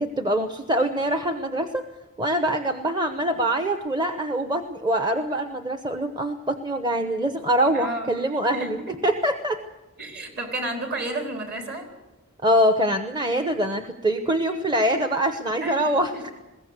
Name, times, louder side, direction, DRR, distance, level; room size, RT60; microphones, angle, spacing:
voice 1, 0.0-1.8 2.2-9.6 12.4-16.3, right 1 dB, 20° right, 7 dB, 0.9 m, -24 dB
voice 2, 7.7-8.1 8.5-8.7 10.0-11.9 15.6-16.2, right 2 dB, 50° right, 3 dB, 4.4 m, -31 dB
21.0 x 16.5 x 8.1 m, 1.1 s
head